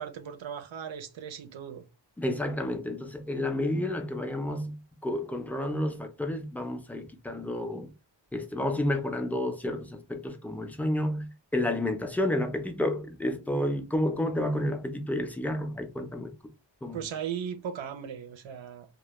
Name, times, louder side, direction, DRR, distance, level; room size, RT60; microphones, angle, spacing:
voice 1, 0.0-1.8 16.9-18.9, right 8 dB, 85° right, 0.5 m, -37 dB
voice 2, 2.2-7.9 8.3-16.3 16.8-17.1, left 1 dB, 5° left, 0.4 m, -30 dB
2.2 x 2.0 x 3.0 m
wide cardioid pair, 75°, 45 cm